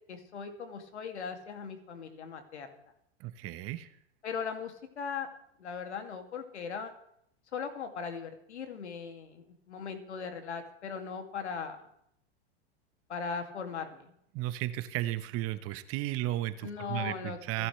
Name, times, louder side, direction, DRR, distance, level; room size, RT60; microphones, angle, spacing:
voice 1, 0.1-2.7 4.2-5.3 5.6-6.9 7.5-11.8 13.1-14.1 16.6-17.7, left 6 dB, 90° left, 5 dB, 2.6 m, -39 dB
voice 2, 3.2-3.9 14.3-17.7, right 15 dB, 45° right, 12 dB, 1.2 m, -34 dB
28.5 x 11.0 x 3.4 m, 0.72 s
hypercardioid pair, 110°, 33 cm